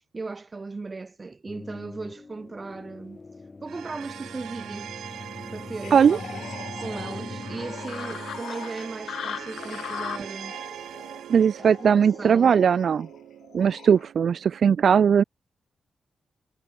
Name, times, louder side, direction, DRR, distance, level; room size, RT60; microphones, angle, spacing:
voice 1, 0.0-3.2 3.6-4.9 5.5-6.4 6.8-10.6 11.6-12.5, right 3 dB, 35° right, 1.7 m, -37 dB
sound 1, 1.5-10.3, left 3 dB, 35° left, 6.8 m, -43 dB
sound 2, 3.7-14.7, right 11 dB, 90° right, 6.5 m, -41 dB
sound 3, 5.8-14.1, left 8 dB, 75° left, 0.8 m, -40 dB
voice 2, 11.3-13.1 13.5-15.2, right 7 dB, 70° right, 0.5 m, -19 dB
cardioid pair, 55°, 0 cm